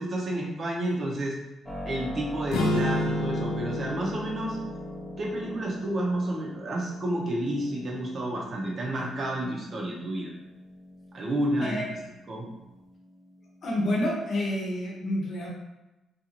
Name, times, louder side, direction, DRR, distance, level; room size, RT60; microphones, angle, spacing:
voice 1, 0.0-1.4 1.8-4.6 5.2-10.3 11.1-11.8 12.3-12.4, right 1 dB, 45° right, -3 dB, 0.7 m, -30 dB
Keyboard (musical), 1.7-14.4, left 1 dB, 5° left, 0.6 m, -44 dB
sound 1, 2.5-6.7, left 1 dB, 85° left, 0.5 m, -31 dB
voice 2, 13.6-15.5, left 1 dB, 55° left, -3 dB, 0.8 m, -28 dB
2.6 x 2.4 x 2.9 m, 0.99 s
cardioid pair, 90°, 0 cm